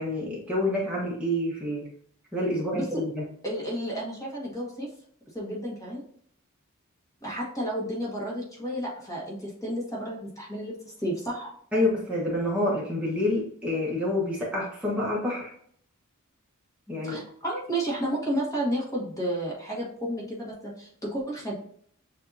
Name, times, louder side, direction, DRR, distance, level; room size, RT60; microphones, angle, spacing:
voice 1, 0.0-1.9 2.3-3.3 11.7-15.5 16.9-17.2, left 1 dB, 5° right, -6 dB, 1.2 m, -28 dB
voice 2, 2.7-3.0 3.4-4.9 5.3-6.0 7.2-11.5 17.0-21.5, right 1 dB, 15° left, -4 dB, 1.3 m, -32 dB
7.2 x 2.7 x 2.7 m, 0.62 s
head